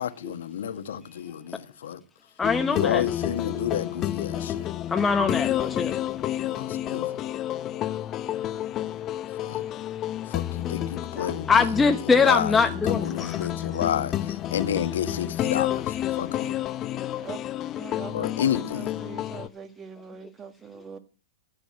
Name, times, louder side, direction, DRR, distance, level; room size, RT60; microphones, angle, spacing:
voice 1, 0.0-2.0 2.7-4.7 6.4-7.1 9.4-9.6 10.3-11.6 12.2-12.5 12.9-16.6 18.1-19.0, left 9 dB, 70° left, 1.5 m, -30 dB
sound 1, 2.4-19.5, left 12 dB, 30° left, 0.8 m, -30 dB
voice 2, 2.4-3.0 4.9-6.0 11.2-13.5 17.1-17.2, left 5 dB, 15° left, 1.1 m, -23 dB
voice 3, 17.8-21.0, right 6 dB, 25° right, 1.9 m, -42 dB
14.5 x 6.9 x 7.8 m
hypercardioid pair, 110°, 0 cm